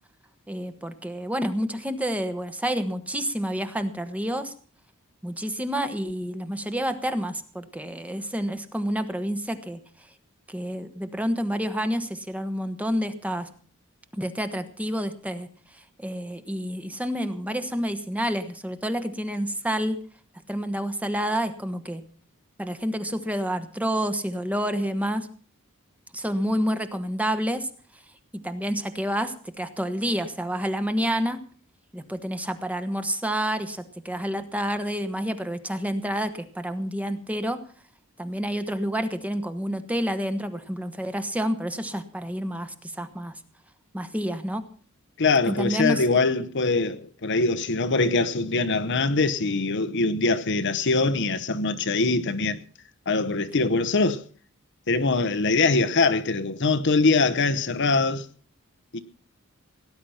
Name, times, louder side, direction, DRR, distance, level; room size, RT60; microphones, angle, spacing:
voice 1, 0.5-4.5 5.2-9.8 10.5-13.5 14.1-15.5 16.0-20.0 20.5-22.0 22.6-25.3 26.1-27.7 28.3-31.4 31.9-37.6 38.2-43.4 43.9-44.6 45.5-46.0, equal, 5° right, 1.1 m, -29 dB
voice 2, 45.2-52.6 53.1-54.2 54.9-58.3 58.9-59.0, left 3 dB, 60° left, 0.9 m, -23 dB
18.0 x 10.5 x 5.7 m
head